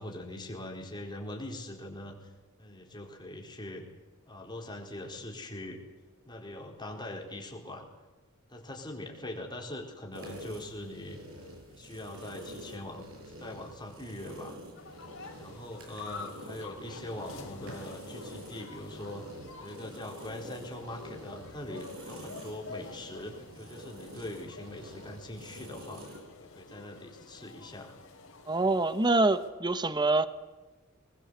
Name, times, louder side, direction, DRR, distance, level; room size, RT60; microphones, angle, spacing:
voice 1, 0.0-2.3 2.6-3.9 4.3-5.8 6.3-7.9 8.5-14.5 15.4-19.2 19.6-26.0 26.4-28.0, left 1 dB, 20° left, 4.3 m, -42 dB
sound 1, 10.1-26.2, equal, 65° right, 7.8 m, -47 dB
sound 2, 14.8-29.5, left 3 dB, 60° left, 3.9 m, -48 dB
voice 2, 28.5-30.3, right 2 dB, 20° right, 1.0 m, -25 dB
21.5 x 20.5 x 8.3 m
head